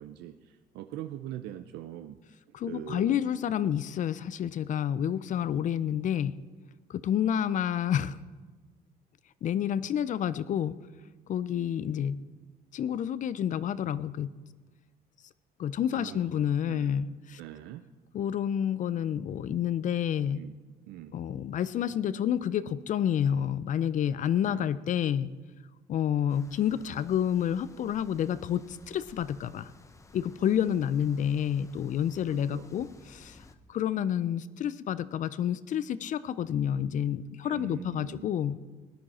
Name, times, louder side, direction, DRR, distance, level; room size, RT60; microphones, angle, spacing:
voice 1, 0.0-2.2 2.7-3.2 15.9-17.0 17.4-17.9 18.9-19.0 20.3-20.5 20.9-21.2 24.4-24.7 32.3-32.7 37.4-38.3, right 13 dB, 85° right, 8 dB, 0.5 m, -42 dB
voice 2, 2.5-6.3 6.9-8.2 9.4-10.7 11.3-12.2 12.7-14.3 15.6-17.4 18.1-20.4 21.1-25.3 25.9-29.7 30.1-33.4 33.7-38.6, left 9 dB, 50° left, 17 dB, 0.5 m, -29 dB
sound 1, 26.3-33.5, left 3 dB, 20° left, 0.8 m, -56 dB
18.0 x 10.5 x 4.3 m, 1.3 s
cardioid pair, 110°, 17 cm